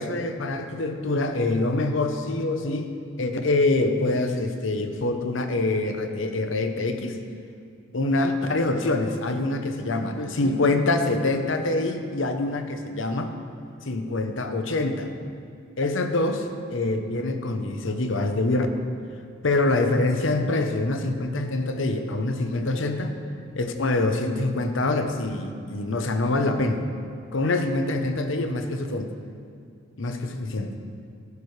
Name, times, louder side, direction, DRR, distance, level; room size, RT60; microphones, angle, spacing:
voice 1, 0.0-2.9 3.2-7.2 7.9-13.3 13.8-15.1 15.8-16.4 16.7-18.7 19.4-23.1 23.5-26.9 27.3-29.1 30.0-30.7, left 2 dB, 65° left, 6 dB, 0.8 m, -25 dB
16.5 x 9.6 x 3.3 m, 2.4 s
head